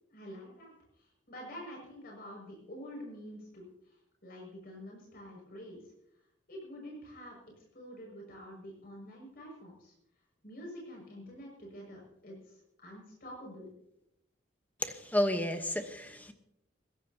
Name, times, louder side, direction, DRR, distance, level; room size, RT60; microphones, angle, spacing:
voice 1, 0.1-5.9 6.5-9.9 10.4-13.7, equal, 50° left, -2 dB, 6.2 m, -47 dB
voice 2, 14.8-16.3, left 1 dB, 10° left, 6 dB, 1.1 m, -31 dB
22.0 x 16.5 x 2.9 m, 0.81 s
head